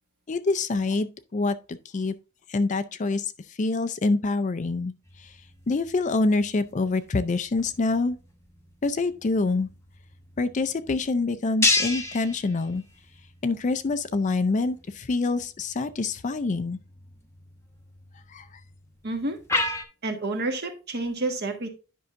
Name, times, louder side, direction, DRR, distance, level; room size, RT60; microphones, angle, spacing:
voice 1, 0.3-2.1 2.5-4.9 5.2-5.4 5.7-8.2 8.8-9.7 10.4-12.8 13.4-16.8 18.3-18.6, left 3 dB, 35° left, 0.4 m, -26 dB
sound 1, 5.0-19.8, left 2 dB, 10° left, 0.9 m, -34 dB
voice 2, 19.0-19.4 20.0-21.7, right 2 dB, 45° right, 1.3 m, -29 dB
10.5 x 5.5 x 2.5 m
head